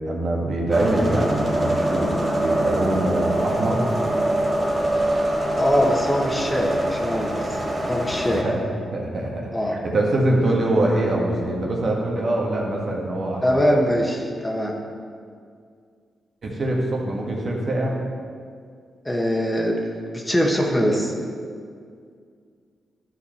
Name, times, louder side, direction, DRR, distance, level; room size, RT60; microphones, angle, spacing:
voice 1, 0.0-3.9 8.3-8.6 8.9-13.8 16.4-18.0, right 1 dB, 55° right, -2 dB, 1.8 m, -24 dB
sound 1, 0.7-8.4, right 1 dB, 35° right, 1.4 m, -24 dB
voice 2, 5.6-8.5 9.5-9.8 13.4-14.7 19.0-21.1, equal, 15° left, 0 dB, 1.5 m, -23 dB
11.5 x 5.3 x 4.4 m, 2.2 s
cardioid pair, 55°, 0 cm